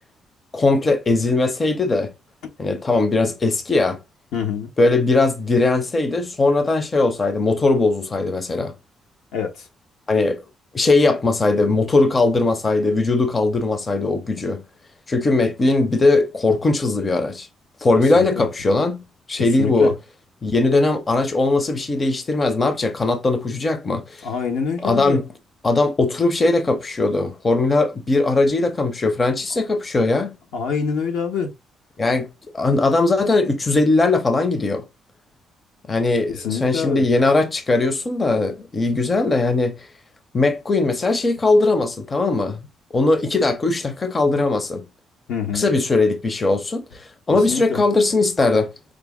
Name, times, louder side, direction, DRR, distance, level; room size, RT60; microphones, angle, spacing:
voice 1, 0.5-2.1 2.6-4.0 4.8-8.7 10.1-10.4 10.7-14.6 15.1-17.5 17.8-19.9 20.4-24.3 24.8-25.3 25.6-30.4 32.0-34.8 35.9-39.8 40.3-42.6 42.9-44.8 45.5-48.7, left 3 dB, 30° left, 0.6 m, -19 dB
voice 2, 4.3-4.7 9.3-9.6 18.1-18.4 19.4-19.9 24.2-25.2 30.5-31.5 36.3-37.0 45.3-45.7 47.5-47.8, left 6 dB, 85° left, 1.0 m, -26 dB
5.0 x 2.0 x 3.4 m
cardioid pair, 90°, 0 cm